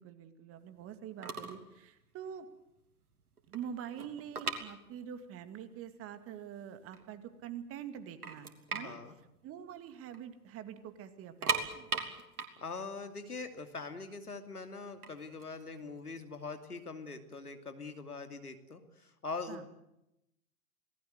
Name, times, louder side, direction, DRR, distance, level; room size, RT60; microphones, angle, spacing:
voice 1, 0.0-2.5 3.5-9.0 9.4-12.0 19.5-19.6, right 9 dB, 30° right, 10 dB, 2.4 m, -45 dB
sound 1, 0.9-1.0 1.2-1.7 1.9-2.2 2.7-2.8 3.1-5.3 5.6-5.7 6.3-6.4 6.8-7.5 7.9-8.0 8.2-10.2 10.5-10.6 11.2-14.1 14.8-16.6, right 4 dB, 80° right, 3.3 m, -38 dB
voice 2, 8.7-9.2 12.6-19.7, left 4 dB, 85° left, 7 dB, 2.8 m, -43 dB
27.5 x 19.0 x 8.1 m, 0.85 s
figure-of-eight pair, 105°, 44 cm